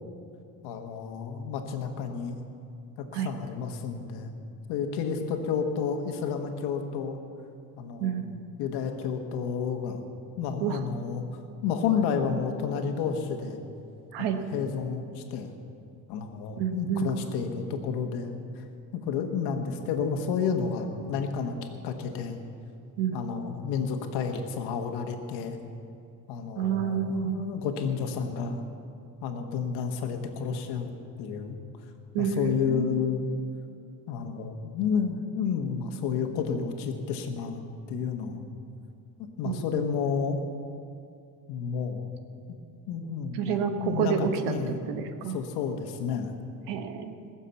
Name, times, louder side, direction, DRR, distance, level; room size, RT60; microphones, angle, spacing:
voice 1, 0.6-2.4 3.1-4.3 4.7-7.2 7.8-8.2 8.6-10.0 10.4-13.6 14.2-15.5 16.1-18.6 19.0-21.5 21.8-22.4 23.1-25.6 26.3-28.6 29.2-30.9 31.2-31.6 32.2-33.3 34.1-37.6 37.9-38.4 39.2-40.4 41.5-42.1 42.9-44.8 45.3-46.3, left 6 dB, 85° left, 5 dB, 1.5 m, -31 dB
voice 2, 8.0-8.4 10.6-10.8 14.1-14.4 16.6-17.1 23.0-23.3 26.5-27.5 32.1-33.0 39.4-39.9 43.3-45.4 46.7-47.1, right 8 dB, 85° right, 7 dB, 1.3 m, -29 dB
20.0 x 7.2 x 7.0 m, 2.4 s
cardioid pair, 130°, 39 cm